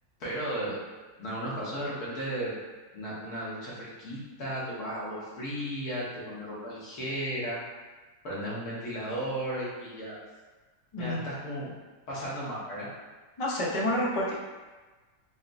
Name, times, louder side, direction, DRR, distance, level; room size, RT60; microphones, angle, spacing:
voice 1, 0.2-0.8 1.2-2.5 2.9-7.6 8.2-10.2 11.0-11.7 12.1-12.9, right 1 dB, 75° left, -7 dB, 1.6 m, -35 dB
voice 2, 10.9-11.2 13.4-14.3, left 1 dB, 55° left, -4 dB, 0.3 m, -28 dB
5.9 x 2.0 x 2.5 m, 1.3 s
omnidirectional pair, 1.6 m